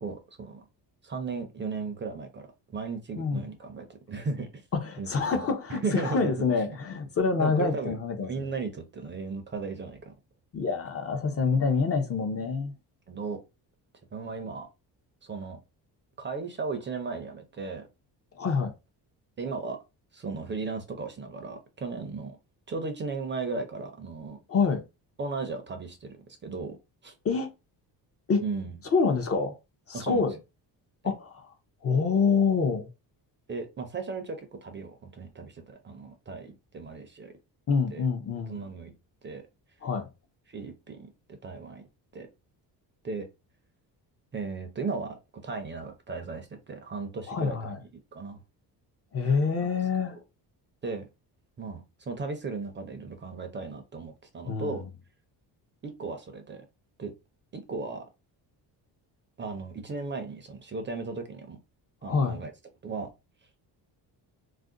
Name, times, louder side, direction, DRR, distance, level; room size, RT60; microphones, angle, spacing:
voice 1, 0.0-0.6 1.0-4.5 5.0-5.4 5.7-6.3 7.4-8.0 8.2-10.1 13.1-13.4 14.1-14.7 15.2-15.6 16.2-17.9 19.4-19.8 20.1-22.4 22.7-24.4 25.2-26.8 27.0-27.1 28.4-28.8 29.9-30.3 33.5-37.3 37.9-38.0 38.5-38.9 39.2-39.4 40.5-41.1 41.4-41.8 42.1-42.3 43.0-43.3 44.3-45.2 45.4-47.7 48.1-48.4 49.2-49.4 49.6-49.7 50.8-51.1 51.6-54.8 55.8-56.7 57.0-57.1 57.5-58.0 59.4-61.6 62.0-62.5 62.8-63.1, right 4 dB, 30° right, 0.5 m, -36 dB
voice 2, 4.7-8.4 10.5-12.7 18.3-18.7 24.5-24.8 27.2-27.5 28.3-28.4 28.9-29.6 29.9-30.4 31.0-31.3 31.8-32.9 37.7-38.6 39.8-40.1 47.3-47.8 49.1-50.2 54.5-54.8 62.0-62.4, left 5 dB, 35° left, 0.6 m, -26 dB
2.5 x 2.1 x 3.7 m
cardioid pair, 140°, 41 cm